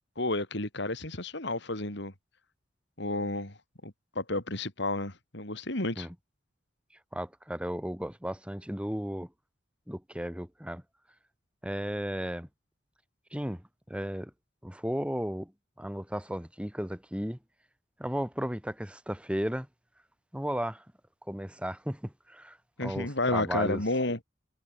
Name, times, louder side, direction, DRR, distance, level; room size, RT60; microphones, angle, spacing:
voice 1, 0.2-2.1 3.0-3.6 3.8-6.1 22.8-24.2, left 2 dB, 65° left, 5.2 m, -31 dB
voice 2, 7.1-9.3 9.9-10.8 11.6-12.5 13.3-14.3 14.6-15.5 15.8-17.4 18.0-19.7 20.3-20.8 21.3-23.8, equal, 5° right, 4.8 m, -34 dB
head